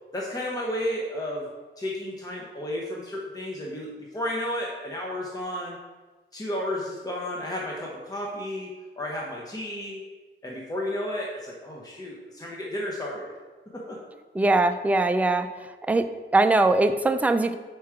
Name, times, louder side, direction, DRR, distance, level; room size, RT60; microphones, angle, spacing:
voice 1, 0.1-1.5 1.8-5.8 6.3-10.0 10.4-13.3 13.7-14.0, left 1 dB, 20° left, -3 dB, 0.9 m, -32 dB
voice 2, 14.4-15.5 15.9-16.1 16.3-17.6, right 2 dB, 5° right, 8 dB, 0.3 m, -21 dB
5.9 x 4.6 x 4.8 m, 1.3 s
wide cardioid pair, 145°, 20 cm